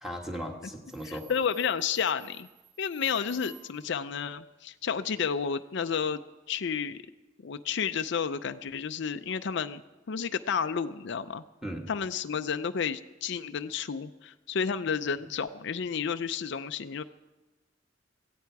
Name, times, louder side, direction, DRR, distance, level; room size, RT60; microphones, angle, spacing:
voice 1, 0.0-1.3 11.6-11.9, equal, ahead, 1 dB, 1.7 m, -37 dB
Subway metro underground, 0.9-4.0, right 9 dB, 30° right, 4.7 m, -54 dB
voice 2, 1.0-2.5 2.8-6.2 6.5-7.0 7.4-9.8 10.1-11.4 11.9-17.0, left 6 dB, 65° left, 10 dB, 0.5 m, -31 dB
17.5 x 15.5 x 4.7 m, 1.1 s
head